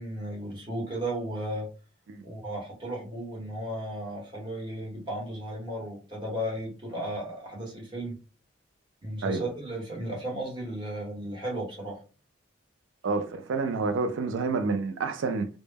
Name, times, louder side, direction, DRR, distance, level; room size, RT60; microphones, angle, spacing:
voice 1, 0.0-1.7 2.2-8.1 9.0-12.0, right 1 dB, 25° right, 1.0 m, -35 dB
voice 2, 13.0-15.5, right 4 dB, 80° right, 0.4 m, -28 dB
2.1 x 2.1 x 3.3 m
head